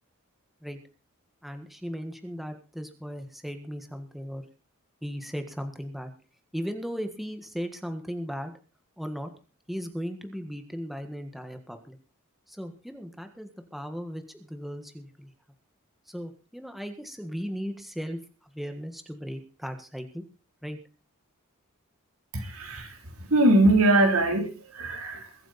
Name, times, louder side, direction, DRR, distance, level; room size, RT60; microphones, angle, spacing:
voice 1, 1.4-4.4 5.0-6.1 6.5-8.5 9.0-9.3 9.7-12.0 12.5-15.3 16.1-20.2 20.6-20.8, equal, ahead, 6 dB, 1.5 m, -37 dB
voice 2, 22.3-25.3, right 1 dB, 75° right, 4 dB, 3.6 m, -22 dB
22.0 x 9.1 x 4.2 m, 0.34 s
head